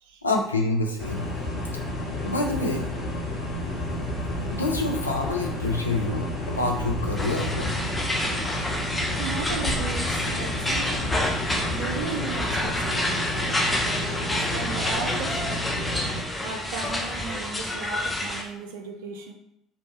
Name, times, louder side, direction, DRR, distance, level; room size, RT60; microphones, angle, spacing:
voice 1, 0.2-1.3 2.2-2.9 4.5-7.7, left 2 dB, 85° left, 0.3 m, -27 dB
sound 1, 1.0-16.2, left 1 dB, 45° left, 0.9 m, -31 dB
sound 2, 7.2-18.4, left 1 dB, 15° left, 0.5 m, -29 dB
voice 2, 9.2-15.5 16.4-19.3, right 5 dB, 65° right, 0.3 m, -36 dB
2.7 x 2.1 x 2.9 m
figure-of-eight pair, 60°, 0 cm